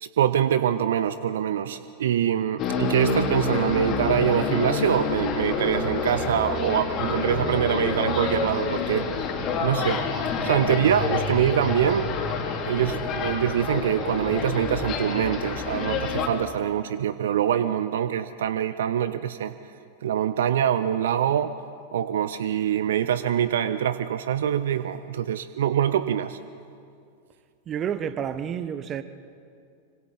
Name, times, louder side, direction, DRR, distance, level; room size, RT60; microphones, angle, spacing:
voice 1, 0.0-9.1 9.6-12.1 12.7-19.5 20.0-21.6 21.9-26.4, right 10 dB, 60° right, 0.6 m, -24 dB
sound 1, 2.6-16.3, left 4 dB, 35° left, 2.9 m, -28 dB
voice 2, 27.7-29.0, right 8 dB, 30° right, 1.0 m, -29 dB
26.5 x 25.5 x 4.2 m
figure-of-eight pair, 90°, 0 cm